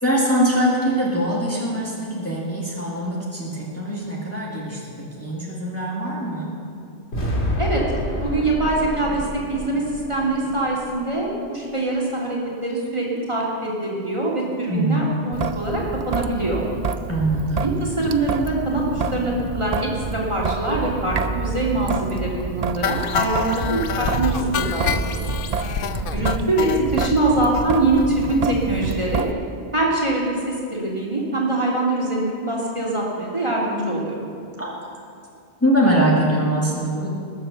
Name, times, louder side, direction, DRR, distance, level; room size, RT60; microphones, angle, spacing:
voice 1, 0.0-6.6 14.7-15.0 17.1-17.6 34.6-34.7 35.6-37.1, right 1 dB, 15° left, -5 dB, 2.2 m, -22 dB
sound 1, 7.1-11.3, equal, 85° left, 2.7 m, -28 dB
voice 2, 8.2-9.8 10.1-16.6 17.6-25.2 25.7-25.8 26.1-29.2 29.7-34.2, right 2 dB, 30° right, -4 dB, 2.9 m, -23 dB
Traffic noise roadway noise / Drip / Trickle dribble, 15.3-29.3, right 5 dB, 50° right, 0.5 m, -28 dB
sound 2, 22.8-27.1 27.5-27.7 28.0-28.1 28.3-28.4 28.7-28.8, left 8 dB, 65° left, 0.7 m, -27 dB
19.5 x 7.8 x 6.9 m, 2.4 s
omnidirectional pair, 1.1 m